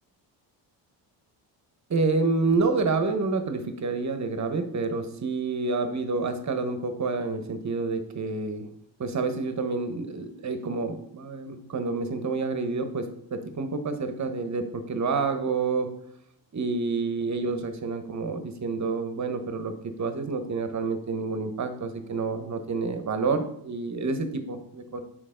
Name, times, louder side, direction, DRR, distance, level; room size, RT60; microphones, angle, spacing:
voice 1, 1.9-8.7 9.0-15.9 16.5-19.7 20.0-25.0, right 4 dB, 35° right, 8 dB, 1.0 m, -28 dB
6.7 x 4.5 x 3.8 m, 0.73 s
cardioid pair, 85°, 47 cm